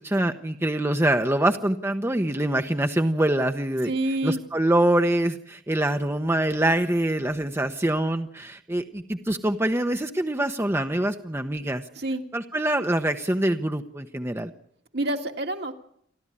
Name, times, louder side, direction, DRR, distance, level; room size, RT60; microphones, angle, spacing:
voice 1, 0.0-3.9 4.2-11.8 12.3-14.5, right 1 dB, 15° right, 6 dB, 0.9 m, -24 dB
voice 2, 3.9-4.4 12.0-12.2 14.9-15.7, right 1 dB, 60° right, 4 dB, 2.0 m, -27 dB
29.0 x 12.5 x 9.9 m, 0.72 s
head